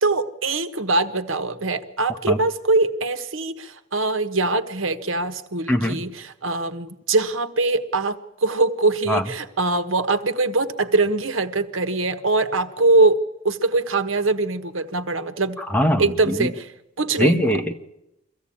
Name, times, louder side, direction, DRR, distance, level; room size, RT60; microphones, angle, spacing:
voice 1, 0.0-13.2 13.4-15.6 16.0-16.7 17.0-17.5, right 3 dB, 85° right, 10 dB, 1.3 m, -22 dB
voice 2, 5.7-6.0 9.1-9.2 15.7-16.5 17.2-17.7, equal, 10° left, 5 dB, 1.2 m, -21 dB
23.5 x 15.5 x 8.7 m, 0.88 s
head